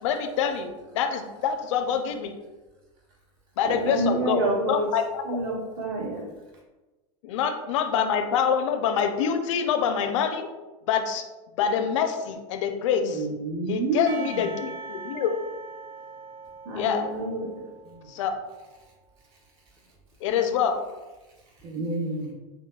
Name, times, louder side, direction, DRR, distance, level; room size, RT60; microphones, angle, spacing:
voice 1, 0.0-2.3 3.6-4.4 4.7-5.4 7.2-10.5 10.9-11.2 11.6-13.3 13.7-15.3 16.7-17.0 18.1-18.3 20.2-20.8, left 7 dB, 80° left, 7 dB, 0.5 m, -26 dB
voice 2, 3.6-4.9 5.2-6.2 16.6-17.5, right 2 dB, 65° right, -3 dB, 1.3 m, -28 dB
voice 3, 13.0-14.4 17.9-18.0 21.6-22.3, right 3 dB, 25° right, 3 dB, 0.6 m, -29 dB
Percussion / Church bell, 14.1-18.5, right 4 dB, 85° right, 0.8 m, -42 dB
5.4 x 2.2 x 2.3 m, 1.2 s
supercardioid pair, 135°, 16 cm